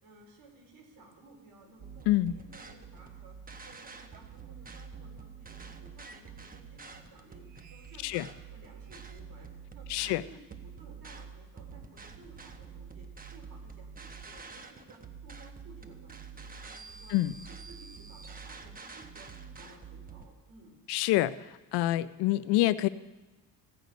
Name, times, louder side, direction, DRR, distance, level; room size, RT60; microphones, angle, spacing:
voice 1, 0.0-3.4 3.6-7.4 7.7-20.8, right 3 dB, 55° right, 0 dB, 4.5 m, -56 dB
sound 1, 1.8-20.3, right 5 dB, 20° right, 0.9 m, -47 dB
voice 2, 9.9-10.2 17.1-17.3 20.9-21.4 21.7-22.9, left 16 dB, 70° left, 16 dB, 0.6 m, -26 dB
16.0 x 8.1 x 5.2 m, 1.1 s
cardioid pair, 105°, 42 cm